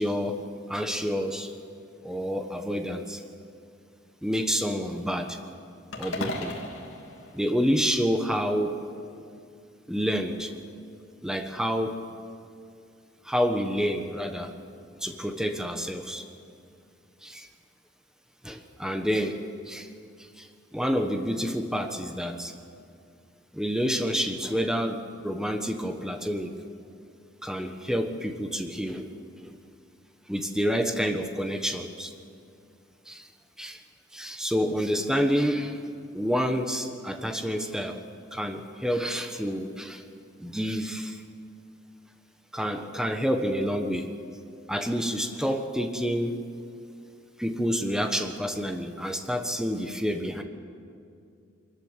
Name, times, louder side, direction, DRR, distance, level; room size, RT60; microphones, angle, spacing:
voice 1, 0.0-1.5 2.0-3.2 4.2-5.4 5.9-6.6 7.3-8.8 9.9-10.5 11.2-12.0 13.2-14.5 15.0-16.2 17.2-17.5 18.4-19.4 19.7-19.9 20.4-20.5 20.7-22.5 23.5-26.6 27.4-29.1 29.4-29.5 30.3-32.1 33.1-33.3 33.6-33.8 34.1-35.9 36.1-38.0 38.3-40.0 40.4-41.2 42.5-44.1 44.7-46.4 47.4-50.4, equal, 5° right, 5 dB, 1.2 m, -28 dB
sound 1, 5.9-8.3, left 1 dB, 65° left, 2.5 m, -37 dB
24.0 x 14.0 x 9.7 m, 2.4 s
head